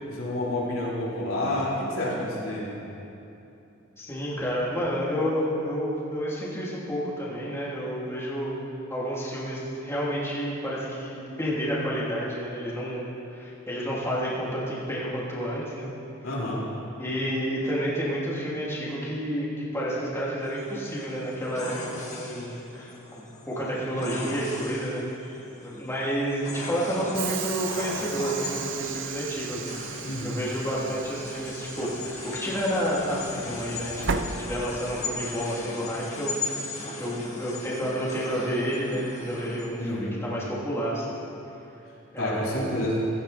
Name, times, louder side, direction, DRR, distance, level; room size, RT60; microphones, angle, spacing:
voice 1, 0.0-2.7 16.2-16.6 30.0-30.4 39.8-40.2 42.2-43.1, left 1 dB, 70° left, -6 dB, 4.1 m, -29 dB
voice 2, 4.0-8.5 8.9-15.9 17.0-21.8 22.1-22.9 23.5-25.1 25.6-36.6 37.0-41.2 42.1-42.7, equal, 10° left, -7 dB, 3.0 m, -30 dB
sound 1, 20.4-39.7, left 3 dB, 35° left, 2.2 m, -38 dB
Train / Sliding door, 27.1-35.1, right 6 dB, 60° right, 0.7 m, -36 dB
16.5 x 16.0 x 4.3 m, 2.9 s
head